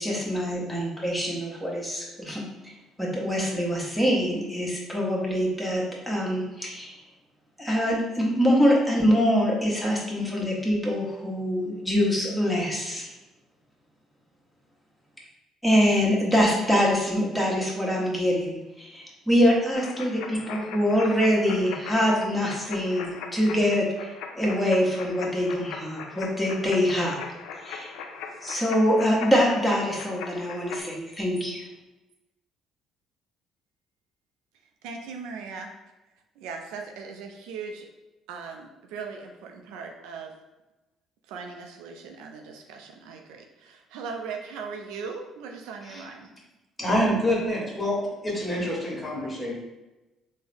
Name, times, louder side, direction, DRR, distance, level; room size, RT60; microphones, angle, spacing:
voice 1, 0.0-2.7 3.0-7.0 7.6-13.1 15.6-27.2 27.6-27.9 28.4-31.6, equal, 5° left, -4 dB, 1.1 m, -24 dB
sound 1, 19.7-30.8, left 5 dB, 80° left, 0.3 m, -39 dB
voice 2, 34.8-35.7 36.4-37.9 38.3-40.3 41.3-46.3, right 5 dB, 80° right, 3 dB, 0.3 m, -39 dB
voice 3, 46.8-49.5, equal, 20° left, -3 dB, 1.3 m, -26 dB
3.6 x 2.0 x 3.3 m, 1.0 s
hypercardioid pair, 60°, 0 cm